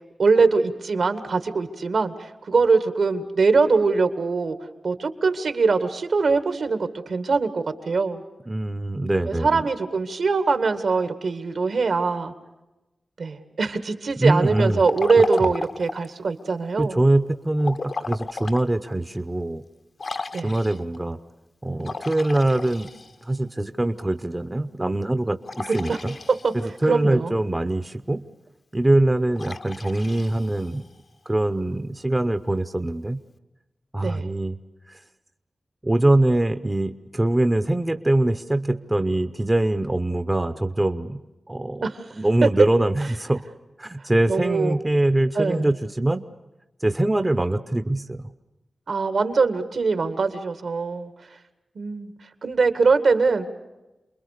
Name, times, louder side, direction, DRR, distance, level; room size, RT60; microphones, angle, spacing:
voice 1, 0.2-4.6 4.8-8.2 9.3-12.3 13.2-17.0 20.3-20.5 25.9-26.0 26.3-26.5 26.9-27.3 34.0-34.3 41.8-42.0 44.3-44.8 45.4-45.7 48.9-51.1 51.8-52.1 52.4-53.5, right 4 dB, 70° right, 9 dB, 2.0 m, -22 dB
voice 2, 8.5-9.7 14.2-14.8 15.2-15.5 16.8-19.6 20.4-21.2 21.6-22.9 23.2-26.1 26.5-28.2 28.7-30.8 31.3-33.2 33.9-34.6 34.9-35.0 35.8-41.2 41.5-43.4 43.8-46.2 46.8-48.3, right 1 dB, 15° right, 10 dB, 0.8 m, -23 dB
Liquid, 14.5-16.1 17.6-18.7 19.1-19.2 20.0-21.0 21.8-23.4 25.4-26.8 29.3-31.0, left 3 dB, 50° left, 0.9 m, -34 dB
28.5 x 22.0 x 6.7 m, 1.0 s
wide cardioid pair, 135°, 0 cm